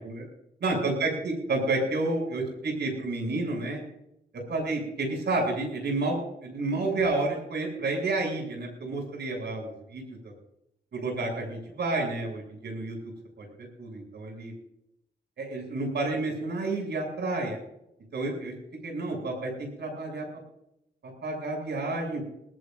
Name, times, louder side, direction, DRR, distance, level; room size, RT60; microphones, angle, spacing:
voice 1, 0.6-3.8 4.5-10.3 10.9-13.0 13.4-14.5 15.4-17.6 18.1-18.5 18.8-20.2 21.0-22.3, right 2 dB, 75° right, 2 dB, 7.6 m, -30 dB
20.5 x 20.0 x 2.7 m, 0.82 s
wide cardioid pair, 140°, 18 cm